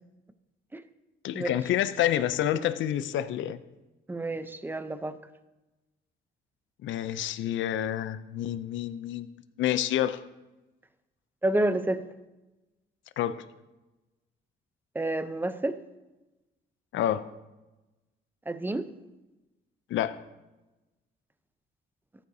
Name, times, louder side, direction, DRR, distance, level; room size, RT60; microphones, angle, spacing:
voice 1, 1.2-3.6 6.8-9.3 9.6-10.2 13.2-13.4 16.9-17.2 19.9-20.2, left 11 dB, 75° left, 12 dB, 0.5 m, -28 dB
voice 2, 4.1-5.2 11.4-12.0 14.9-15.8 18.5-18.9, right 1 dB, 10° right, 12 dB, 0.6 m, -29 dB
14.0 x 9.2 x 2.8 m, 1.0 s
cardioid pair, 90°, 20 cm